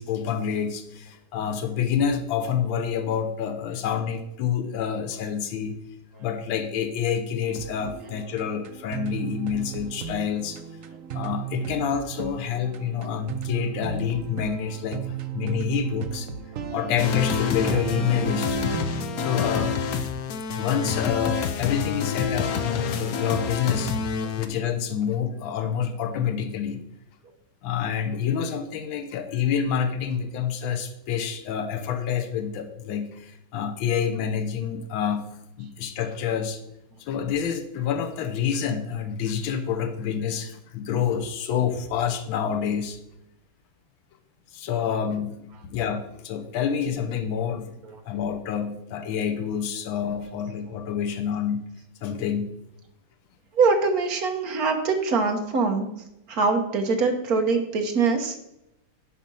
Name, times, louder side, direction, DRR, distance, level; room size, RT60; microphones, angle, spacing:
voice 1, 0.0-5.8 6.2-10.6 11.1-16.3 16.7-18.6 19.2-19.8 20.5-23.9 24.4-26.8 27.6-35.3 35.6-36.6 37.0-43.0 44.5-47.7 48.0-51.6 52.0-52.5, left 8 dB, 80° left, 5 dB, 1.6 m, -27 dB
sound 1, 7.4-19.3, right 9 dB, 85° right, 0.7 m, -35 dB
sound 2, 17.0-24.5, left 6 dB, 65° left, 0.9 m, -27 dB
voice 2, 53.5-55.9 56.3-58.3, right 4 dB, 50° right, 4 dB, 1.5 m, -23 dB
10.5 x 4.3 x 5.5 m, 0.85 s
omnidirectional pair, 2.2 m